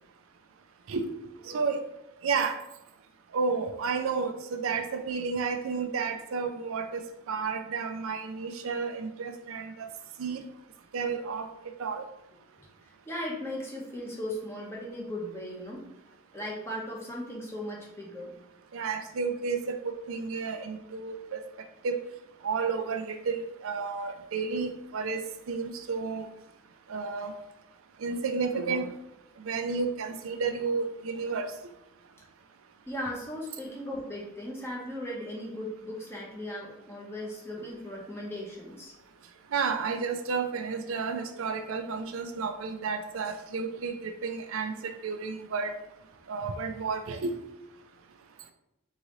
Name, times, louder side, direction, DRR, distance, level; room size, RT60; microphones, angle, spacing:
voice 1, 1.5-1.8 2.2-2.6 3.3-4.3 4.6-7.0 7.3-9.9 10.2-10.4 10.9-11.5 11.8-12.0 18.7-21.4 21.8-22.0 22.4-26.3 26.9-27.4 28.0-28.9 29.5-31.5 39.5-45.7 46.3-47.4, right 5 dB, 85° right, 7 dB, 0.5 m, -31 dB
voice 2, 13.0-15.9 16.3-18.3 32.9-38.9, left 1 dB, 10° left, -3 dB, 0.9 m, -37 dB
3.9 x 3.8 x 3.1 m, 0.89 s
head